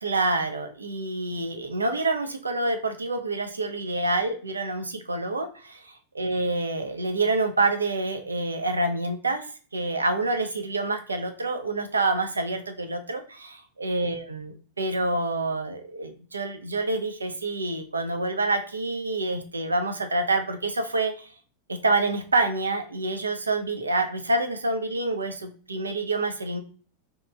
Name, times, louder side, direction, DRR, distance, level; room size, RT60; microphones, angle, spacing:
voice 1, 0.0-5.8 6.1-9.4 9.7-21.3 21.7-26.6, right 2 dB, 75° right, 6 dB, 0.3 m, -27 dB
2.9 x 2.2 x 2.2 m, 0.40 s
figure-of-eight pair, 90°, 0 cm